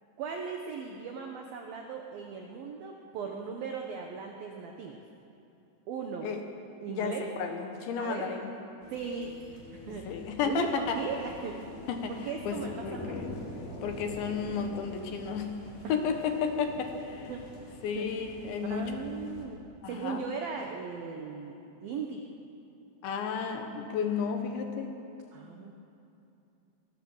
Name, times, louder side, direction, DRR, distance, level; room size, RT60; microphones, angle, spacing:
voice 1, 0.2-5.0 5.9-6.3 6.8-7.3 8.0-8.3 8.9-9.3 9.7-10.1 10.4-11.6 12.1-13.3 17.3-18.1 18.6-21.5 21.8-22.2 25.3-25.7, right 5 dB, 75° right, 2 dB, 2.1 m, -38 dB
voice 2, 6.9-8.5 9.9-11.0 11.9-12.1 12.5-13.4 13.8-15.5 15.9-17.3 17.8-18.9 19.8-20.2 23.0-25.0, left 6 dB, 70° left, 5 dB, 3.4 m, -32 dB
sound 1, 8.8-19.4, left 2 dB, 45° left, 4.3 m, -45 dB
24.5 x 18.5 x 7.3 m, 2.8 s
omnidirectional pair, 5.9 m